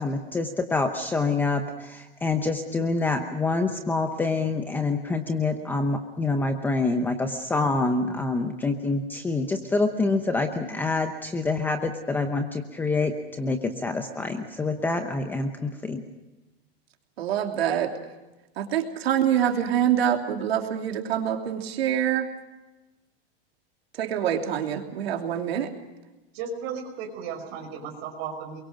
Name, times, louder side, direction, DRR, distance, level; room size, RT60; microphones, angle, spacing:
voice 1, 0.0-16.0, left 3 dB, 5° left, 6 dB, 0.8 m, -26 dB
voice 2, 17.2-17.9 18.6-22.3 23.9-25.7, right 9 dB, 80° right, 3 dB, 3.0 m, -25 dB
voice 3, 26.3-28.6, right 6 dB, 35° right, 3 dB, 5.5 m, -35 dB
30.0 x 22.5 x 5.1 m, 1.1 s
supercardioid pair, 170°, 30 cm